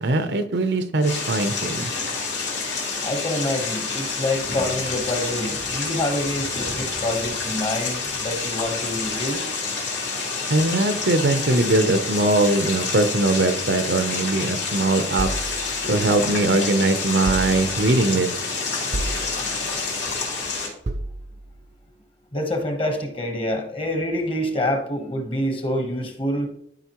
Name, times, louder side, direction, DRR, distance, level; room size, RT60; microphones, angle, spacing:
voice 1, 0.0-1.9 10.5-15.3 15.9-18.3, right 2 dB, 70° right, 9 dB, 0.7 m, -21 dB
sound 1, 1.0-20.7, left 4 dB, 80° left, 2.8 m, -28 dB
voice 2, 3.0-9.4 15.8-15.9 20.1-20.2 22.3-26.5, left 1 dB, 30° left, 4 dB, 1.2 m, -26 dB
sound 2, 15.2-16.6 17.3-18.1 18.9-19.8 20.9-21.7, right 1 dB, 40° right, 0.5 m, -32 dB
12.0 x 5.0 x 3.0 m, 0.71 s
head